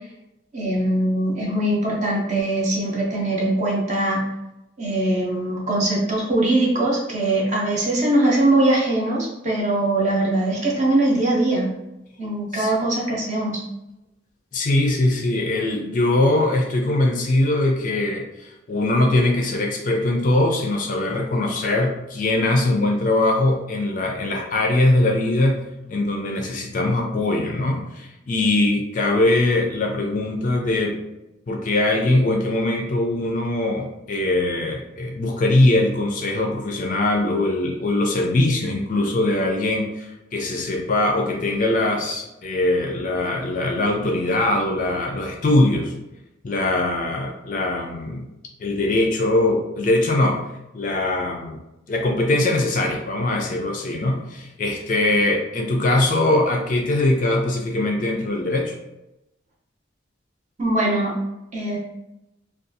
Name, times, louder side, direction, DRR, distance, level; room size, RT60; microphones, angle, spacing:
voice 1, 0.5-4.3 4.8-11.7 12.2-13.6 60.6-61.1 61.5-61.8, right 1 dB, 35° right, -2 dB, 0.6 m, -21 dB
voice 2, 14.5-25.6 25.9-31.0 31.5-45.9 46.4-48.3 48.6-50.4 50.7-51.6 51.9-58.7, left 2 dB, 40° left, 2 dB, 0.4 m, -21 dB
2.5 x 2.3 x 2.6 m, 0.91 s
head